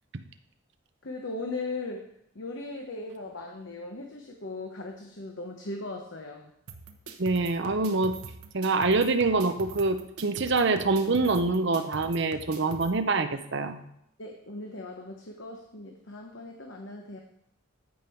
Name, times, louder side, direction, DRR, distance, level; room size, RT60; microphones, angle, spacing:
voice 1, 1.0-2.1 2.3-6.5 14.2-17.2, left 2 dB, 55° left, 2 dB, 1.0 m, -38 dB
sound 1, 6.7-12.9, right 4 dB, 90° right, 1.0 m, -44 dB
voice 2, 7.2-8.2 8.5-13.8, right 3 dB, 55° right, 9 dB, 0.7 m, -25 dB
14.0 x 5.3 x 4.5 m, 0.76 s
head